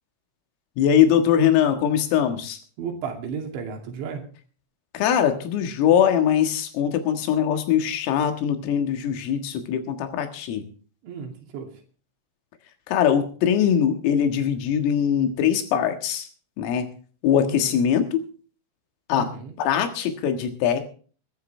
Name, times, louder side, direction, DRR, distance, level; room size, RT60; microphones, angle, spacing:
voice 1, 0.8-2.6 4.9-10.7 12.9-16.3 16.6-16.9 17.2-18.2 19.1-19.3 19.6-20.9, left 9 dB, 85° left, 6 dB, 4.3 m, -22 dB
voice 2, 2.8-4.2 11.0-11.7 17.5-17.8 19.2-19.6, right 6 dB, 65° right, 2 dB, 4.6 m, -34 dB
21.5 x 12.5 x 3.3 m, 0.41 s
omnidirectional pair, 5.8 m